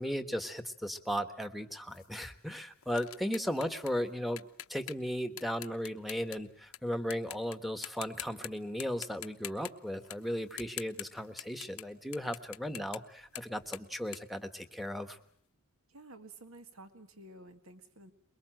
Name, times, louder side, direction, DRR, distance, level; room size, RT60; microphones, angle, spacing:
voice 1, 0.0-15.2, equal, ahead, 9 dB, 1.3 m, -36 dB
sound 1, 1.9-6.8 7.1-7.6 7.8-8.5 8.8-11.9 12.1-15.1, left 13 dB, 85° left, 1.0 m, -45 dB
voice 2, 15.9-18.1, right 2 dB, 75° right, 8 dB, 2.0 m, -52 dB
23.0 x 22.5 x 7.6 m, 0.63 s
head